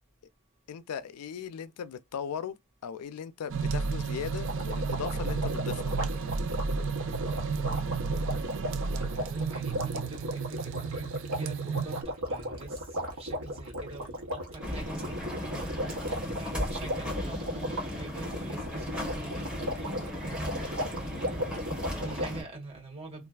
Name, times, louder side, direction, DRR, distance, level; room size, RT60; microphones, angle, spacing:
voice 1, 0.7-2.6 2.8-6.0, left 7 dB, 90° left, 0.4 m, -38 dB
sound 1, 3.5-12.0, right 5 dB, 60° right, 0.4 m, -32 dB
sound 2, 4.4-22.3, equal, 80° right, 1.0 m, -36 dB
voice 2, 8.8-23.3, right 2 dB, 25° right, 1.3 m, -46 dB
sound 3, 14.6-22.4, left 1 dB, 5° right, 1.4 m, -36 dB
3.2 x 2.4 x 2.3 m
head